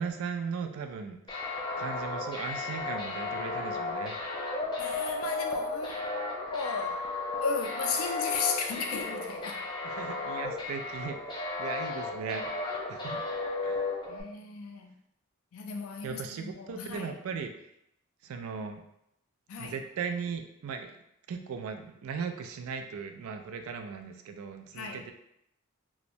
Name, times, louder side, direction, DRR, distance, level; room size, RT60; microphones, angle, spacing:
voice 1, 0.0-4.2 9.8-12.5 12.9-13.2 13.6-13.9 16.0-17.5 18.2-18.8 19.6-20.9 21.3-25.1, right 5 dB, 85° right, 6 dB, 0.3 m, -37 dB
sound 1, 1.3-14.2, left 3 dB, 20° left, 0.4 m, -34 dB
voice 2, 4.8-6.1 6.5-7.0 7.4-9.6 14.1-14.9 15.5-17.1 19.5-19.7 24.7-25.0, left 5 dB, 90° left, 4 dB, 0.4 m, -35 dB
3.0 x 2.1 x 2.6 m, 0.78 s
head